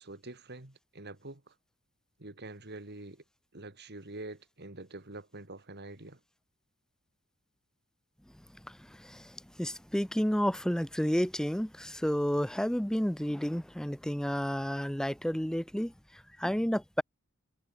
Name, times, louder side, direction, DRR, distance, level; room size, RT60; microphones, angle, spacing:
voice 1, 0.0-1.5 2.2-3.2 3.5-6.2, right 2 dB, 50° right, 3.1 m, -46 dB
voice 2, 8.7-15.9 16.4-17.0, equal, 5° left, 0.7 m, -31 dB
head